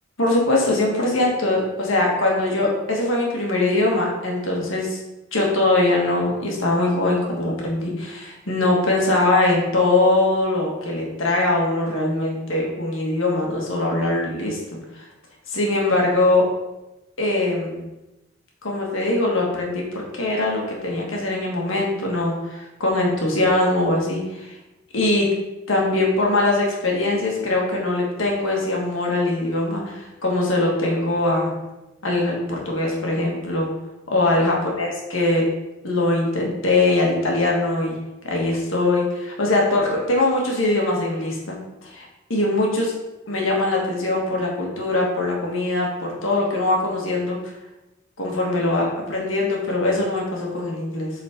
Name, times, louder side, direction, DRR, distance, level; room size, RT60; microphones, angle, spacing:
voice 1, 0.2-5.0 5.3-15.0 15.5-16.5 17.2-17.8 18.6-19.8 20.1-24.5 24.9-25.3 25.7-31.5 32.0-33.7 34.1-35.4 35.8-38.0 38.2-41.6 41.9-42.9 43.3-47.4 48.2-51.1, left 2 dB, 70° left, -2 dB, 1.7 m, -22 dB
7.6 x 4.0 x 3.6 m, 0.99 s
head